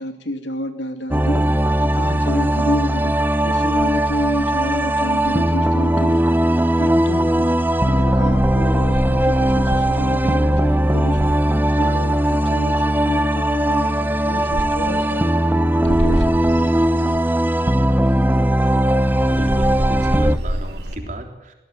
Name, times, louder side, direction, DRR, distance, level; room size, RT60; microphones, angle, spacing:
voice 1, 0.0-1.4 1.8-3.1 3.4-6.3 6.8-7.5 7.9-11.4 11.8-17.1, equal, 85° left, 7 dB, 2.6 m, -29 dB
sound 1, 1.1-20.4, right 1 dB, 10° right, 0.7 m, -18 dB
sound 2, 3.8-4.8 5.2-6.3 6.7-12.3 12.6-12.7 12.9-21.0, equal, 65° right, 3.8 m, -30 dB
voice 2, 19.3-21.5, right 1 dB, 45° right, 4 dB, 3.7 m, -33 dB
21.5 x 17.0 x 9.3 m, 1.0 s
head